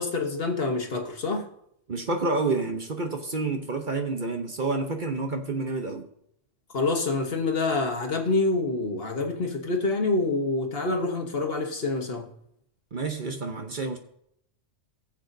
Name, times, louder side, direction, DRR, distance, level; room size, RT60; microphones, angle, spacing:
voice 1, 0.0-1.5 6.7-12.3, left 3 dB, 50° left, 1.5 m, -26 dB
voice 2, 1.9-6.1 12.9-14.0, right 3 dB, 45° right, 0.9 m, -29 dB
19.5 x 7.3 x 2.7 m
omnidirectional pair, 1.3 m